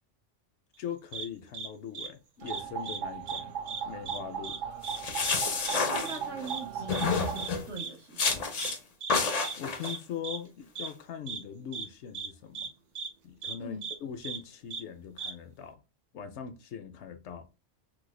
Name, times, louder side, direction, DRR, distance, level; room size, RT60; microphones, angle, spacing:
voice 1, 0.8-3.6 3.9-4.6 9.6-12.7 13.2-15.8 16.1-17.5, left 8 dB, 75° left, 0.8 m, -41 dB
sound 1, 1.1-1.3 1.5-1.7 1.9-2.1 2.5-3.0 3.3-3.4 3.7-4.2 4.4-4.6 4.8-5.0 5.2-5.4 5.7-5.8 6.1-6.2 6.5-6.6 6.9-7.0 7.4-7.5 7.8-7.9 8.2-8.3 8.6-8.7 9.0-9.1 9.4-9.5 9.8-10.0 10.2-10.4 10.8-10.9 11.3-11.4 11.7-11.9 12.1-12.3 12.5-12.7 13.0-13.1 13.4-13.5 13.8-13.9 14.2-14.4 14.7-14.8 15.2-15.3, right 5 dB, 50° right, 0.5 m, -37 dB
sound 2, 2.4-7.5, right 7 dB, 85° right, 0.9 m, -38 dB
sound 3, 4.8-6.5 6.9-7.7 8.2-8.8 9.1-9.9, left 4 dB, 50° left, 0.5 m, -29 dB
voice 2, 5.9-8.5 13.6-13.9, right 3 dB, 70° right, 1.4 m, -42 dB
3.3 x 2.1 x 3.1 m
omnidirectional pair, 1.2 m